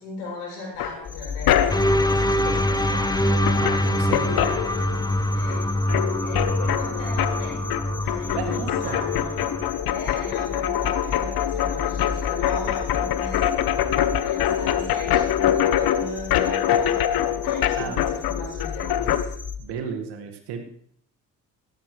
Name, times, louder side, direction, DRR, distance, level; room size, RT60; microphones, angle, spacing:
voice 1, 0.0-4.6 5.3-5.6 6.2-7.6 8.0-9.3 9.8-13.5 14.2-19.3, left 2 dB, 75° left, -3 dB, 7.7 m, -38 dB
sound 1, 0.8-2.1 3.1-3.2 3.4-5.2 5.5-19.2, left 10 dB, 55° left, 1.0 m, -24 dB
sound 2, 1.0-19.6, left 6 dB, 35° left, 2.7 m, -35 dB
sound 3, 1.7-9.7, equal, 10° left, 1.2 m, -24 dB
voice 2, 3.5-4.6 8.3-9.0 17.8-18.0 19.6-20.7, right 6 dB, 70° right, 4 dB, 2.1 m, -34 dB
17.0 x 14.0 x 3.3 m, 0.65 s
hypercardioid pair, 45°, 43 cm